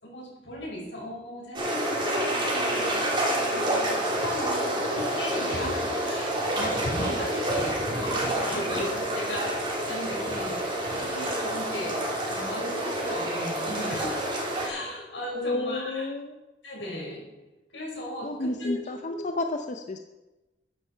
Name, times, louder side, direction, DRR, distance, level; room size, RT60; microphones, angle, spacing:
voice 1, 0.0-10.6 10.9-14.2 14.6-16.1 16.6-17.2 17.7-18.7 19.1-19.3, left 1 dB, 85° left, -2 dB, 5.3 m, -36 dB
sound 1, 1.5-14.7, right 1 dB, 30° right, 3.3 m, -28 dB
voice 2, 15.3-16.4 18.2-20.0, left 2 dB, 45° left, 6 dB, 0.6 m, -31 dB
13.5 x 10.5 x 4.5 m, 1.1 s
head